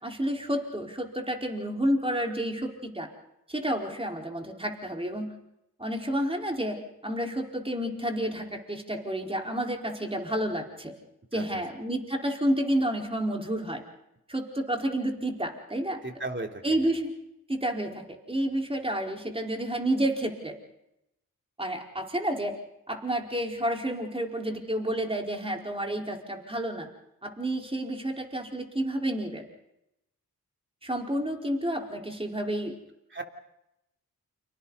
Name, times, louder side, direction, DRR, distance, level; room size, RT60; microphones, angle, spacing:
voice 1, 0.0-3.1 3.5-5.3 5.8-10.9 11.3-13.8 14.3-16.0 16.6-17.1 17.5-20.6 21.6-22.6 22.9-26.9 27.2-29.4 30.8-32.8, right 1 dB, 15° right, 1 dB, 4.5 m, -30 dB
voice 2, 11.3-11.6 16.0-17.0 33.1-33.2, right 2 dB, 30° right, 3 dB, 3.4 m, -36 dB
29.5 x 25.5 x 4.1 m, 0.85 s
cardioid pair, 50°, 36 cm